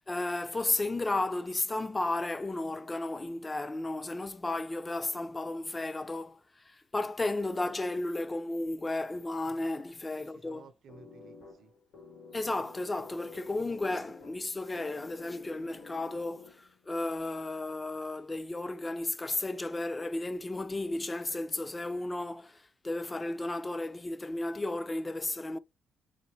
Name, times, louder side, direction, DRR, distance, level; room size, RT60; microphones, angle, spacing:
voice 1, 0.0-6.4 6.7-10.6 12.3-25.6, left 2 dB, 20° left, 0.4 m, -33 dB
voice 2, 10.1-11.7, right 6 dB, 65° right, 0.7 m, -55 dB
sound 1, 10.9-16.9, left 4 dB, 90° left, 2.0 m, -51 dB
4.0 x 3.6 x 3.2 m
cardioid pair, 90°, 0 cm